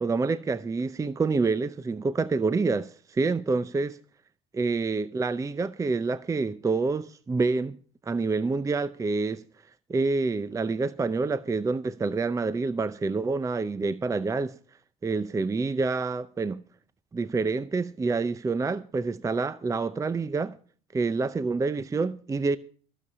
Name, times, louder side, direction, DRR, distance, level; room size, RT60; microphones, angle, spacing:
voice 1, 0.0-4.0 4.5-7.8 8.0-9.4 9.9-14.5 15.0-16.6 17.1-20.6 20.9-22.6, right 4 dB, 15° right, 0.6 m, -27 dB
15.0 x 7.0 x 8.4 m
supercardioid pair, 90°, 19 cm